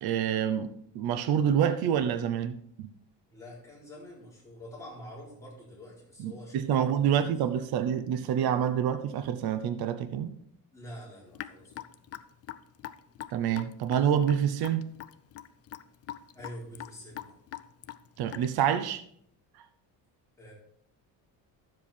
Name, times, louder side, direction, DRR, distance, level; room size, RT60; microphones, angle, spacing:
voice 1, 0.0-2.9 6.2-10.4 13.3-14.9 18.2-19.0, right 9 dB, 55° right, 10 dB, 0.8 m, -27 dB
voice 2, 3.3-7.7 10.7-11.9 16.3-17.4 20.4-20.5, equal, 5° left, -6 dB, 4.3 m, -47 dB
Raindrop / Drip, 11.4-18.7, left 12 dB, 35° left, 0.4 m, -43 dB
11.5 x 7.7 x 4.4 m, 0.68 s
cardioid pair, 160°, 44 cm